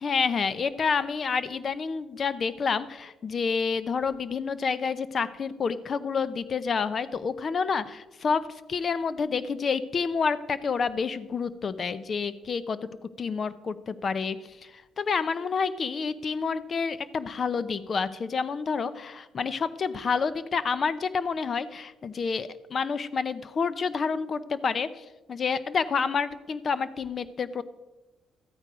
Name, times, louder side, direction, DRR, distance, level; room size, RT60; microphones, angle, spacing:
voice 1, 0.0-12.9 13.2-27.6, left 5 dB, 45° left, 15 dB, 0.7 m, -29 dB
13.5 x 9.0 x 5.0 m, 1.1 s
cardioid pair, 90°, 0 cm